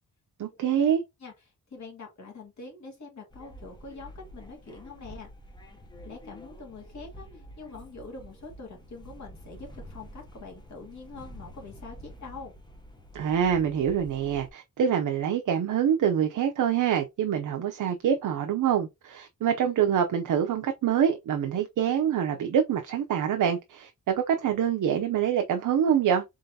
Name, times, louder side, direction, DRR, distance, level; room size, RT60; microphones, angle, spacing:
voice 1, 0.4-1.0 13.1-26.2, right 8 dB, 70° right, 0.6 m, -25 dB
voice 2, 1.7-5.3 6.0-12.5, left 3 dB, 55° left, 2.1 m, -44 dB
sound 1, 3.3-14.5, equal, 15° left, 0.7 m, -48 dB
3.8 x 3.7 x 2.7 m
wide cardioid pair, 160°, 33 cm